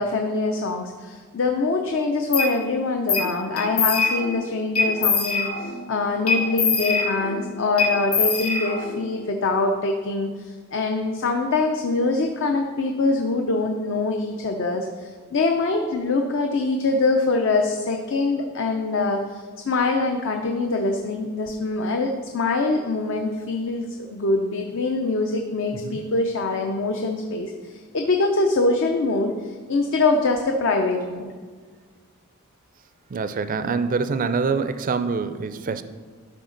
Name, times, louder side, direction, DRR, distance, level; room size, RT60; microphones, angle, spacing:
voice 1, 0.0-31.3, left 3 dB, 60° left, 3 dB, 0.6 m, -24 dB
sound 1, 2.3-2.5 3.1-3.3 3.6-4.4 4.8-5.8 6.3-7.4 7.8-9.0, left 4 dB, 80° left, 1.8 m, -23 dB
voice 2, 25.7-26.1 33.1-35.8, right 4 dB, 40° right, 11 dB, 0.4 m, -25 dB
12.0 x 5.0 x 3.9 m, 1.5 s
head